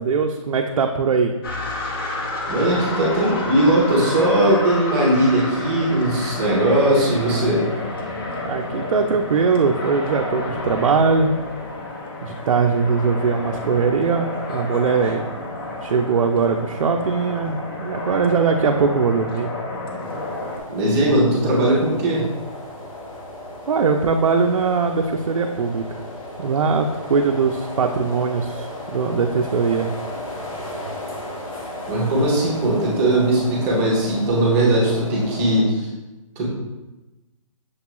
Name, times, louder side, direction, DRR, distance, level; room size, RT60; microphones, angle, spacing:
voice 1, 0.0-1.3 8.4-11.3 12.2-15.2 15.8-19.5 23.7-26.0 26.4-29.9, right 5 dB, 85° right, 3 dB, 0.4 m, -21 dB
sound 1, 1.4-20.6, left 2 dB, 40° left, 0.7 m, -30 dB
voice 2, 2.5-7.6 20.7-22.3 31.9-35.9 36.4-36.5, right 1 dB, 10° right, -6 dB, 0.5 m, -19 dB
sound 2, 20.0-35.6, left 1 dB, 90° left, 1.5 m, -35 dB
6.4 x 2.3 x 2.9 m, 1.1 s
hypercardioid pair, 165°, 17 cm